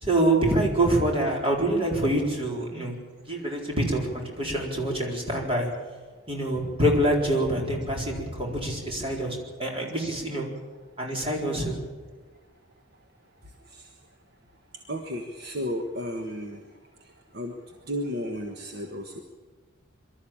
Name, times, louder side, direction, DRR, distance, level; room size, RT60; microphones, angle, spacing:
voice 1, 0.0-3.0 3.3-5.7 6.3-10.5 11.0-11.8, right 1 dB, 30° right, -1 dB, 4.1 m, -26 dB
voice 2, 14.9-16.6 17.3-17.5 17.9-19.2, equal, 50° right, 3 dB, 1.5 m, -33 dB
23.5 x 13.0 x 8.7 m, 1.4 s
head